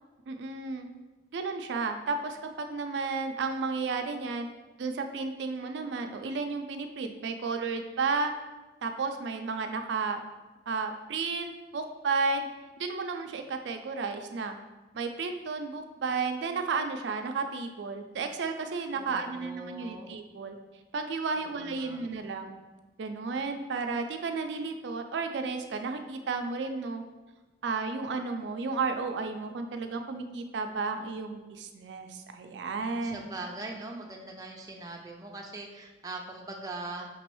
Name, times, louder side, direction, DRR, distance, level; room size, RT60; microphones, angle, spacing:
voice 1, 0.3-0.9 1.3-4.5 4.8-8.3 8.8-10.2 10.7-12.5 12.8-14.6 14.9-20.6 20.9-22.6 23.0-27.0 27.6-33.3, right 4 dB, 80° right, 6 dB, 0.4 m, -33 dB
voice 2, 18.9-20.1 21.4-22.0 33.0-37.1, right 2 dB, 20° right, 1 dB, 0.4 m, -41 dB
5.2 x 3.0 x 3.0 m, 1.2 s
head